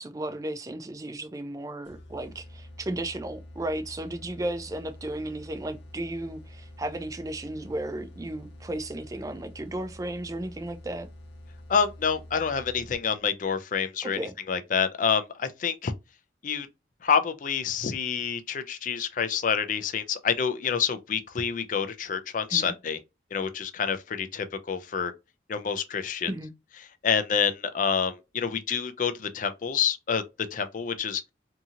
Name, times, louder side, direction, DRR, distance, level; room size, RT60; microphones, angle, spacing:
voice 1, 0.0-11.1 14.0-14.3 22.5-22.7 26.3-26.5, right 1 dB, 20° right, 0.4 m, -34 dB
sound 1, 1.9-13.2, left 1 dB, 85° left, 0.8 m, -47 dB
voice 2, 11.7-14.2 14.5-15.9 16.4-16.7 17.0-23.0 23.3-25.1 25.5-26.3 27.0-30.2 30.5-31.2, left 6 dB, 45° left, 0.4 m, -27 dB
2.8 x 2.7 x 2.4 m
head